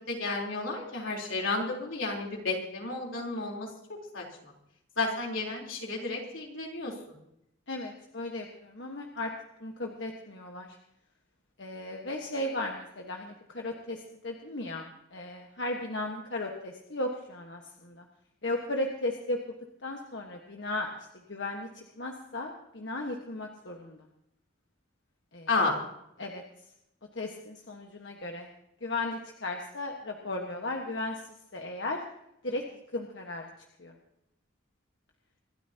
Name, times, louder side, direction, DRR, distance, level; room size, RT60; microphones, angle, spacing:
voice 1, 0.1-3.7 4.1-4.5 5.0-6.9 15.9-16.0 25.5-25.8, left 3 dB, 85° left, -1 dB, 3.8 m, -32 dB
voice 2, 7.7-9.3 9.6-10.8 11.6-18.0 18.4-19.4 19.8-20.9 21.3-24.0 25.3-25.5 26.2-26.4 27.1-28.5 28.8-32.0 32.4-32.6 32.9-33.5 33.8-33.9, left 2 dB, 65° left, 1 dB, 1.4 m, -36 dB
26.0 x 12.5 x 2.9 m, 0.81 s
head